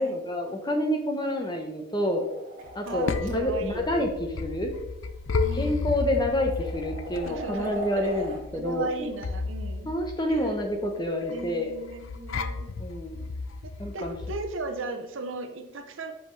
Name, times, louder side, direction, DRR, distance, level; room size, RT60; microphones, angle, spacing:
voice 1, 0.0-2.2 2.7-4.7 5.6-9.1 9.8-11.7 12.8-13.3 13.8-14.1, left 1 dB, 20° left, 3 dB, 1.0 m, -28 dB
sound 1, 2.2-3.3 4.4-4.6 5.5-5.6 6.1-8.4, right 1 dB, 45° right, 1.6 m, -40 dB
sound 2, 2.7-14.6, left 4 dB, 75° left, 0.5 m, -34 dB
voice 2, 2.8-4.2 5.4-5.9 7.2-8.1 8.5-9.9 10.3-10.6 11.3-12.7 13.6-16.1, right 3 dB, 75° right, 6 dB, 0.8 m, -36 dB
7.8 x 5.9 x 3.3 m, 0.96 s
head